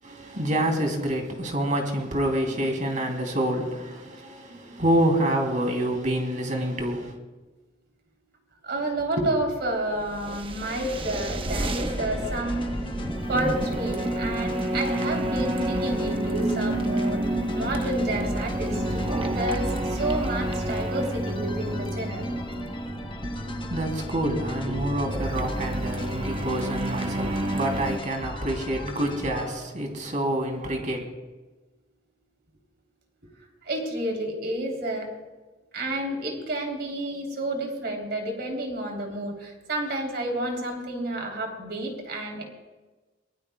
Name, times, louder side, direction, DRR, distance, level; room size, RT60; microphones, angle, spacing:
voice 1, 0.0-7.1 23.7-31.0, right 1 dB, 45° right, 3.1 m, -27 dB
voice 2, 8.6-12.7 13.3-17.2 17.5-22.3 24.7-24.8 33.6-35.1 35.7-42.4, right 1 dB, 60° right, 3.5 m, -30 dB
sound 1, 9.7-28.0, right 1 dB, 30° right, 1.0 m, -29 dB
sound 2, 11.8-29.5, left 1 dB, 30° left, 1.1 m, -39 dB
23.5 x 19.0 x 2.3 m
head